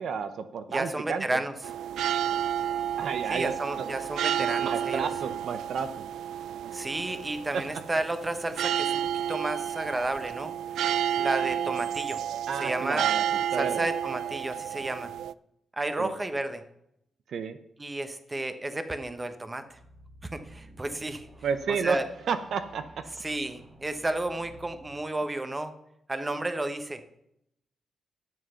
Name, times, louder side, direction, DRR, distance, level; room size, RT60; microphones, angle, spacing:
voice 1, 0.0-1.4 3.0-3.9 4.4-6.1 7.5-7.6 12.5-13.2 13.5-13.9 16.0-16.1 17.3-17.6 21.4-22.0 22.2-23.0, right 6 dB, 70° right, 10 dB, 0.7 m, -31 dB
voice 2, 0.7-1.5 3.3-5.1 6.7-9.0 9.3-10.5 11.2-12.2 12.6-13.0 13.6-15.1 15.7-16.6 17.8-19.8 20.2-21.3 21.8-22.0 23.2-25.7 26.1-27.0, right 2 dB, 20° right, 9 dB, 1.0 m, -32 dB
sound 1, 1.6-15.3, right 10 dB, 85° right, 0.3 m, -31 dB
sound 2, 19.7-24.9, right 1 dB, 45° right, 3.2 m, -52 dB
11.0 x 7.6 x 5.7 m, 0.77 s
cardioid pair, 110°, 0 cm